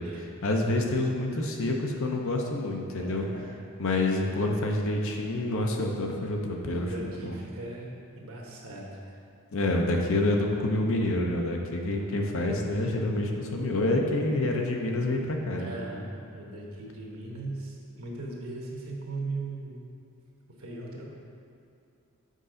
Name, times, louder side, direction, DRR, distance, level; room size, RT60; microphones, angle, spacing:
voice 1, 0.4-3.3 3.8-6.9 7.2-7.3 9.5-15.7, left 2 dB, 65° left, 1 dB, 0.7 m, -27 dB
voice 2, 2.9-3.5 6.7-7.9 8.1-9.1 15.6-19.8 20.6-21.0, right 2 dB, 70° right, -2 dB, 1.1 m, -38 dB
6.5 x 5.2 x 3.8 m, 2.5 s
head